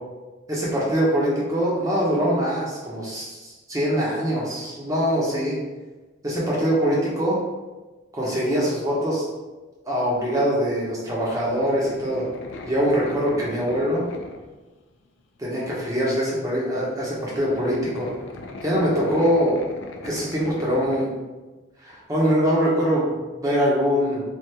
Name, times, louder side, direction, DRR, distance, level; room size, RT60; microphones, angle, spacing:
voice 1, 0.5-5.6 6.2-7.4 8.1-9.3 9.9-12.3 12.6-14.1 15.4-18.1 18.6-19.6 20.0-21.1 21.8-24.2, equal, 15° right, -5 dB, 0.7 m, -23 dB
sound 1, 11.2-14.7 15.2-15.3 16.5-16.6 16.8-21.0, left 2 dB, 75° left, 0.4 m, -39 dB
3.3 x 2.4 x 2.8 m, 1.2 s
head